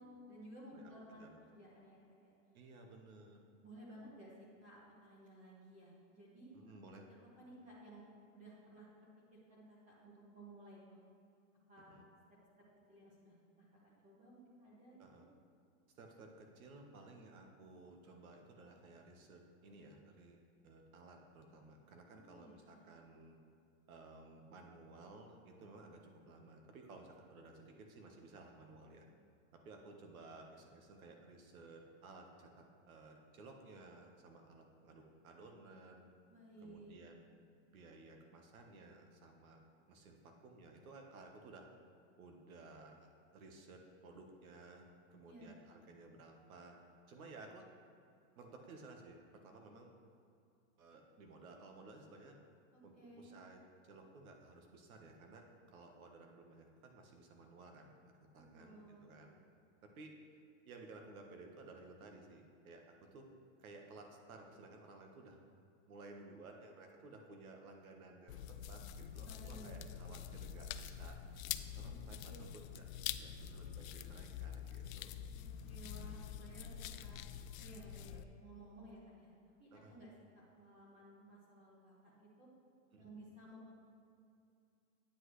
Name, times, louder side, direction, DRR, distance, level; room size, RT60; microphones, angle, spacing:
voice 1, 0.0-2.3 3.6-4.3 4.6-6.5 7.4-8.9 9.3-11.0 11.7-12.0 12.9-15.0 22.1-22.9 36.3-37.0 45.2-45.5 52.7-53.4 58.5-59.1 69.2-69.9 71.8-72.0 72.2-72.4 75.3-77.2 77.6-79.3 79.6-82.5 82.9-83.7, right 1 dB, 20° right, -6 dB, 1.2 m, -57 dB
voice 2, 0.7-1.4 2.5-3.4 6.5-7.0 11.8-12.1 15.0-15.3 15.9-23.4 23.9-29.1 29.5-36.1 36.6-39.6 39.9-41.7 42.2-44.8 45.1-46.8 47.1-47.6 48.4-49.9 50.8-52.4 52.8-57.9 58.3-59.4 59.8-63.3 63.6-65.4 65.9-68.4 68.7-71.2 71.7-75.2 79.7-80.0 82.9-83.1, right 3 dB, 80° right, 3 dB, 1.4 m, -56 dB
sound 1, 68.3-78.2, left 9 dB, 70° left, 0.5 m, -46 dB
9.2 x 8.1 x 3.2 m, 2.5 s
supercardioid pair, 165°, 41 cm